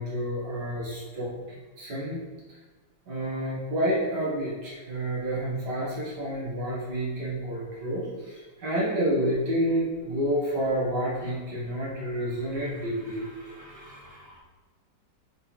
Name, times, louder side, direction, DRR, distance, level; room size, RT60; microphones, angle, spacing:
voice 1, 0.0-2.2 3.1-14.4, equal, 65° right, -6 dB, 2.6 m, -29 dB
7.9 x 4.5 x 3.8 m, 1.3 s
omnidirectional pair, 1.9 m